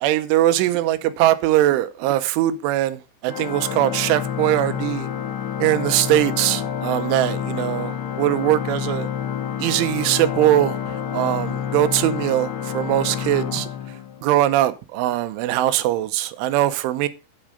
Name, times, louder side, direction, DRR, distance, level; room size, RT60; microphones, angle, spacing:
voice 1, 0.0-5.1 5.6-9.1 9.6-13.7 14.2-17.1, right 14 dB, 90° right, 3.3 m, -21 dB
Organ, 3.3-14.4, left 9 dB, 75° left, 3.7 m, -28 dB
8.7 x 6.2 x 6.5 m
omnidirectional pair, 5.4 m